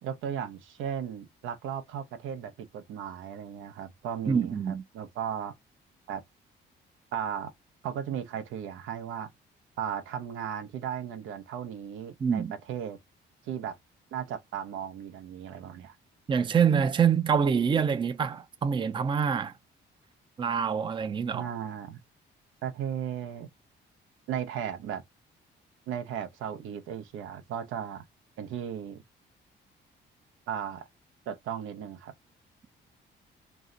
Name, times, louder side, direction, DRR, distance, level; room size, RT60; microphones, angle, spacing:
voice 1, 0.0-4.5 4.9-5.5 6.1-6.2 7.1-7.5 7.8-9.3 9.8-12.4 12.7-13.0 13.5-13.8 14.1-15.9 21.3-22.0 22.6-23.5 24.3-25.0 25.9-28.0 28.4-29.0 30.5-30.9 31.3-32.1, right 8 dB, 85° right, 0.6 m, -36 dB
voice 2, 4.3-4.8 12.2-12.5 16.3-19.5 20.4-21.5, right 7 dB, 25° right, 0.4 m, -26 dB
2.7 x 2.0 x 3.7 m
cardioid pair, 90°, 20 cm